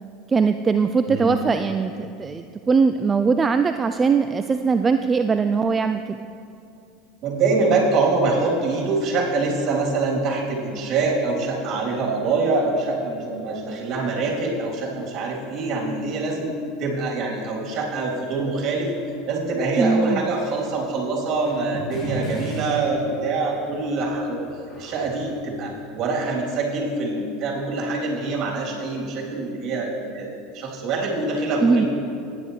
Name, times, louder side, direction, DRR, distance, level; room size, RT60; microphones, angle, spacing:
voice 1, 0.3-6.2 19.8-20.2 31.6-31.9, right 5 dB, 25° right, 9 dB, 0.3 m, -21 dB
voice 2, 1.1-1.4 7.2-18.9 19.3-24.4 24.8-30.3 30.5-31.9, right 3 dB, 45° right, -3 dB, 3.1 m, -24 dB
sound 1, 20.3-20.7 21.4-23.6 23.9-25.8, right 1 dB, 35° left, 2.6 m, -35 dB
17.0 x 9.7 x 3.2 m, 2.5 s
hypercardioid pair, 90°, 0 cm